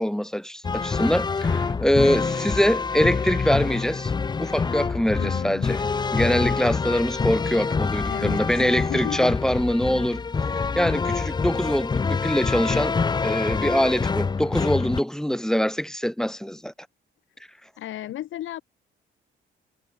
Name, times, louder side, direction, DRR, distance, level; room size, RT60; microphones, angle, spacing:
voice 1, 0.0-4.1 4.4-5.8 6.1-10.2 10.8-13.0 13.2-16.7, equal, 5° left, 4.0 m, -24 dB
sound 1, 0.6-15.0, left 4 dB, 20° left, 0.5 m, -26 dB
voice 2, 5.2-5.7 8.1-9.3 17.8-18.6, left 13 dB, 80° left, 6.6 m, -34 dB
cardioid pair, 90°, 20 cm